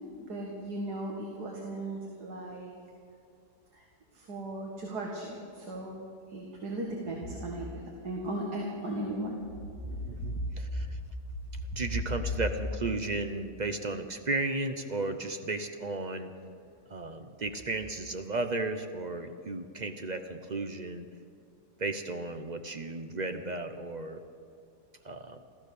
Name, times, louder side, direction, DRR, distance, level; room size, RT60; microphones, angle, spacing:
voice 1, 0.3-2.7 3.7-3.8 4.1-6.0 6.3-9.4 9.9-10.5, right 1 dB, 75° right, -1 dB, 2.3 m, -37 dB
voice 2, 10.1-11.0 11.8-16.3 16.9-21.1 21.8-24.2 25.0-25.4, right 2 dB, 45° right, 7 dB, 0.6 m, -34 dB
14.5 x 14.5 x 6.7 m, 2.5 s
omnidirectional pair, 1.7 m